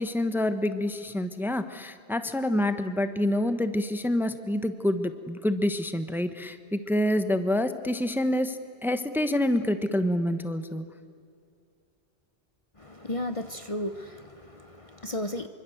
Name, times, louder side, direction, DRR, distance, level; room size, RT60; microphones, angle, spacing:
voice 1, 0.0-10.8, left 1 dB, ahead, 10 dB, 1.0 m, -27 dB
voice 2, 12.8-15.5, left 1 dB, 35° left, 9 dB, 1.0 m, -34 dB
26.5 x 24.5 x 7.8 m, 2.4 s
omnidirectional pair, 1.1 m